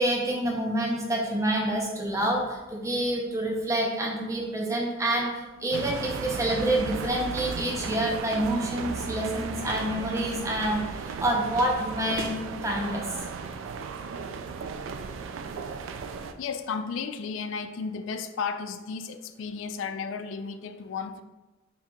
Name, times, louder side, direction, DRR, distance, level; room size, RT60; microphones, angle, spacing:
voice 1, 0.0-12.3 12.6-13.2, right 1 dB, 15° right, 0 dB, 0.6 m, -27 dB
sound 1, 5.7-16.3, right 5 dB, 90° right, 0.3 m, -35 dB
voice 2, 16.4-21.2, left 5 dB, 80° left, 9 dB, 0.3 m, -33 dB
4.4 x 3.7 x 2.3 m, 1.1 s
head